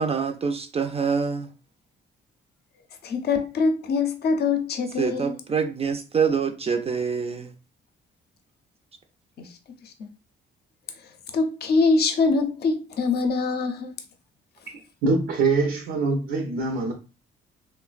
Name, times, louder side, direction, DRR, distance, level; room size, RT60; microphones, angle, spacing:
voice 1, 0.0-1.5 5.0-7.5, right 6 dB, 30° right, 0.4 m, -25 dB
voice 2, 3.0-5.4 9.4-9.6 9.8-10.1 11.3-13.9, left 4 dB, 55° left, 0.6 m, -24 dB
voice 3, 15.0-16.9, right 3 dB, 80° right, 0.6 m, -23 dB
3.1 x 2.0 x 2.4 m
cardioid pair, 90°, 20 cm